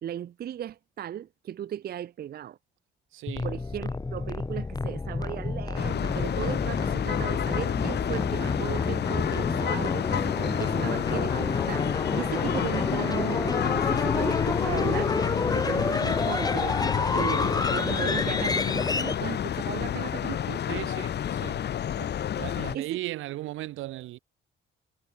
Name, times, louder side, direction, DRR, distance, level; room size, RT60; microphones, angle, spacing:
voice 1, 0.0-2.6 3.4-16.8 17.1-20.6 22.0-22.1 22.7-22.9, right 10 dB, 50° right, 0.6 m, -36 dB
voice 2, 3.1-3.5 20.7-21.6 22.3-24.2, right 16 dB, 90° right, 1.1 m, -36 dB
sound 1, 3.3-19.1, left 3 dB, 20° left, 1.5 m, -29 dB
sound 2, 5.7-22.7, left 10 dB, 55° left, 1.2 m, -29 dB
cardioid pair, 90°, 20 cm